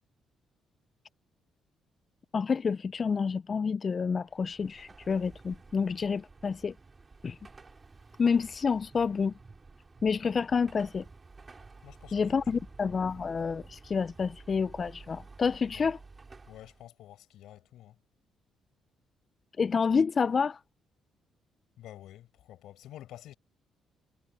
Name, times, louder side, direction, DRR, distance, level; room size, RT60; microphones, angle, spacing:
voice 1, 2.3-6.8 7.2-7.4 8.2-9.4 10.0-11.1 12.1-16.0 19.6-20.6, left 5 dB, 40° left, 0.3 m, -28 dB
Car passing by / Traffic noise roadway noise / Engine, 4.2-16.9, right 3 dB, 30° right, 5.9 m, -52 dB
voice 2, 11.8-12.6 15.7-15.9 16.5-18.0 21.8-23.4, left 13 dB, 85° left, 7.8 m, -50 dB
cardioid pair, 90°, 0 cm